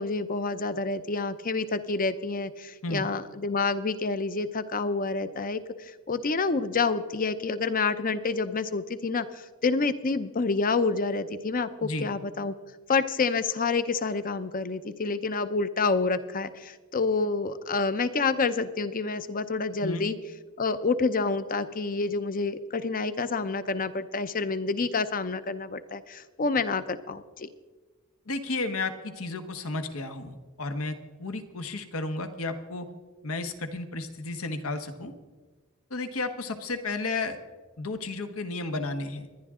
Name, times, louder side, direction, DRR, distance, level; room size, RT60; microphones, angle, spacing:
voice 1, 0.0-12.5 12.9-20.1 20.6-27.5, left 4 dB, 40° left, 12 dB, 0.7 m, -28 dB
voice 2, 28.3-32.9 33.2-35.1 35.9-37.4 37.8-39.3, left 3 dB, 85° left, 8 dB, 1.2 m, -33 dB
26.5 x 11.0 x 3.7 m, 1.3 s
head